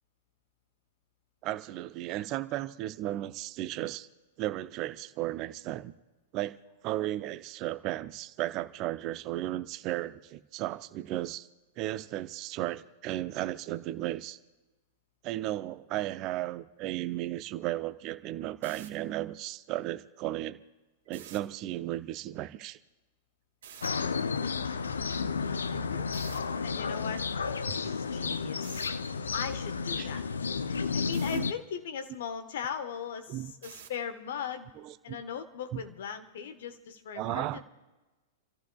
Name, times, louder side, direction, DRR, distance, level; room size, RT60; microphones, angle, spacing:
voice 1, 1.4-4.1 4.4-5.9 6.3-6.6 6.8-11.5 11.8-14.4 15.2-20.6 21.1-22.8 27.7-27.8 30.0-30.1 31.3-31.5 33.3-33.5 34.8-35.2 35.7-35.8 37.2-37.6, right 15 dB, 40° right, 13 dB, 0.6 m, -35 dB
sound 1, 18.5-18.9 21.1-21.4 23.6-23.9 26.1-26.4 28.6-28.9 31.1-31.4 33.6-34.0, right 9 dB, 60° right, 2.0 m, -48 dB
sound 2, 23.8-31.5, left 5 dB, 75° left, 0.6 m, -32 dB
voice 2, 25.7-26.1 26.6-27.2 27.8-28.9 29.3-30.2 30.7-34.7 35.0-37.6, left 7 dB, 60° left, 8 dB, 1.3 m, -39 dB
29.5 x 14.5 x 2.4 m, 1.1 s
figure-of-eight pair, 95°, 0 cm